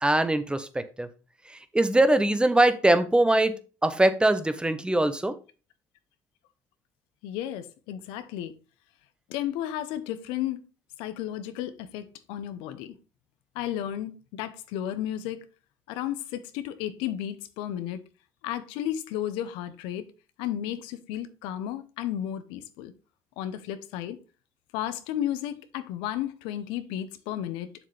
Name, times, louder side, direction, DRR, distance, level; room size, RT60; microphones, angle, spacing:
voice 1, 0.0-1.1 1.7-3.5 3.8-5.4, right 1 dB, 10° right, 1.0 m, -22 dB
voice 2, 7.2-8.5 9.3-10.6 11.0-12.9 13.5-15.4 15.9-18.0 18.4-20.1 20.4-22.9 23.4-24.2 24.7-27.7, left 11 dB, 90° left, 0.8 m, -33 dB
7.3 x 6.6 x 3.3 m
supercardioid pair, 85°, 8 cm